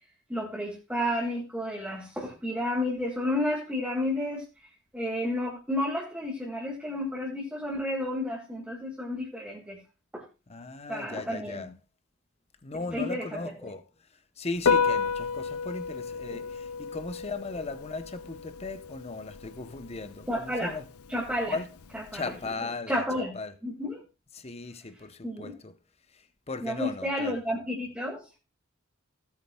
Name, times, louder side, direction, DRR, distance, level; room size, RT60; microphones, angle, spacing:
voice 1, 0.3-9.8 10.1-10.2 10.9-11.7 12.9-13.7 16.3-16.4 20.3-20.8 21.1-21.6 21.9-22.2 22.9-23.4 23.6-24.0 25.2-25.5 26.6-28.2, left 1 dB, 5° right, 1.7 m, -31 dB
voice 2, 10.5-11.7 12.6-13.8 14.4-20.9 21.5-21.7 22.1-23.0 23.3-23.5 24.3-25.8 26.1-27.4, left 3 dB, 30° left, 0.8 m, -37 dB
Piano, 14.6-22.5, left 5 dB, 80° left, 0.6 m, -32 dB
16.5 x 8.3 x 2.3 m
head